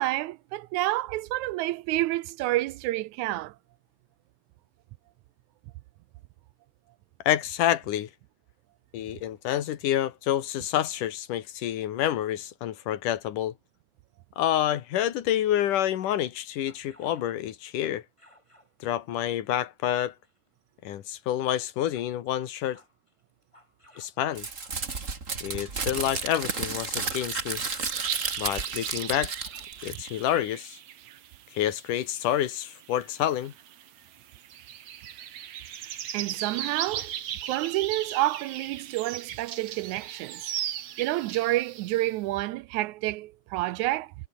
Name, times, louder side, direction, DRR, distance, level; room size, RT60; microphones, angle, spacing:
voice 1, 0.0-3.6 36.1-37.1 37.4-40.7 41.0-44.1, right 17 dB, 80° right, 1.9 m, -29 dB
voice 2, 7.3-8.1 8.9-13.5 14.4-18.0 18.8-20.1 20.8-22.8 24.0-24.5 25.4-27.6 28.4-29.3 29.8-30.8 31.5-33.5, left 11 dB, 85° left, 3.1 m, -28 dB
sound 1, 16.1-17.4 17.7-18.7 19.1-20.5 21.0-22.2 22.5-25.1 25.5-27.0 27.7-28.7 29.0-29.8 30.2-30.3, left 1 dB, 10° left, 7.1 m, -59 dB
Crumpling crinkling, 24.4-30.3, right 4 dB, 25° right, 2.3 m, -32 dB
sound 2, 27.9-42.1, right 10 dB, 65° right, 2.6 m, -38 dB
omnidirectional pair, 3.6 m